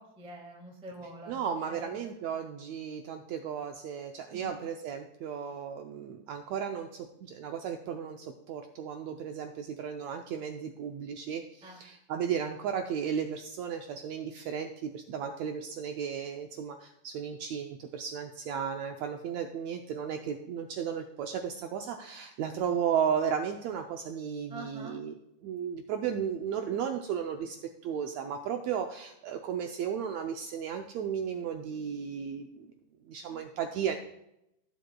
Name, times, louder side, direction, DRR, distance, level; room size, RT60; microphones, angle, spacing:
voice 1, 0.0-1.4 1.6-2.1 4.3-4.5 11.6-11.8 24.5-25.0 33.3-33.4, right 1 dB, 10° right, 0 dB, 0.3 m, -46 dB
voice 2, 1.3-25.1 25.4-27.6 27.8-32.7 33.1-34.0, right 8 dB, 80° right, 4 dB, 1.6 m, -34 dB
16.0 x 7.6 x 2.3 m, 0.83 s
omnidirectional pair, 3.7 m